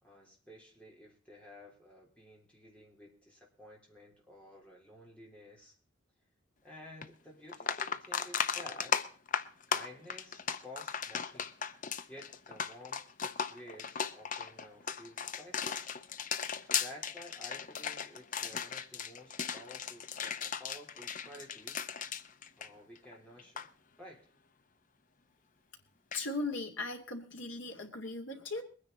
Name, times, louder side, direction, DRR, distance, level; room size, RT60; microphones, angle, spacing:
voice 1, 0.0-5.8 6.6-8.9 9.7-11.5 12.1-15.9 16.6-21.8 22.6-23.7 24.0-24.3, left 1 dB, 5° left, -3 dB, 3.9 m, -53 dB
sound 1, 7.0-7.1 7.5-23.1 23.4-23.7 26.1-26.2, left 7 dB, 40° left, 0.6 m, -36 dB
voice 2, 26.1-28.6, left 2 dB, 65° left, 3 dB, 2.6 m, -38 dB
22.0 x 9.8 x 4.1 m, 0.40 s
head